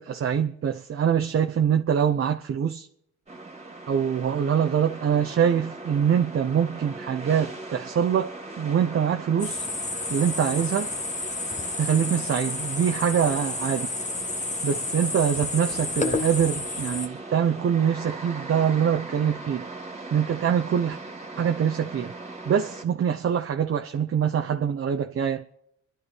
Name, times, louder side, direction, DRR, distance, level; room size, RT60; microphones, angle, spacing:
voice 1, 0.0-2.9 3.9-9.7 10.1-10.9 11.8-13.9 14.6-19.7 20.1-21.0 21.4-22.1 22.4-25.4, right 8 dB, 45° right, 0.9 m, -24 dB
sound 1, 3.3-22.8, right 2 dB, 20° right, 2.4 m, -40 dB
sound 2, 9.4-17.1, left 3 dB, 25° left, 1.5 m, -31 dB
26.0 x 12.0 x 4.6 m
cardioid pair, 90°, 30 cm